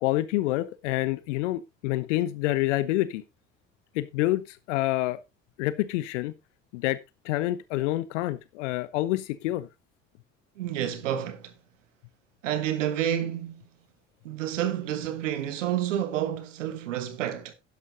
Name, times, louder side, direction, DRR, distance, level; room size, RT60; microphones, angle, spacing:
voice 1, 0.0-3.2 3.9-5.2 5.6-6.3 6.7-7.0 7.2-9.7, left 16 dB, 70° left, 0.7 m, -27 dB
voice 2, 10.6-11.5 12.4-13.6 14.2-17.5, right 11 dB, 75° right, 1.4 m, -29 dB
11.5 x 11.0 x 2.7 m
figure-of-eight pair, 55°, 37 cm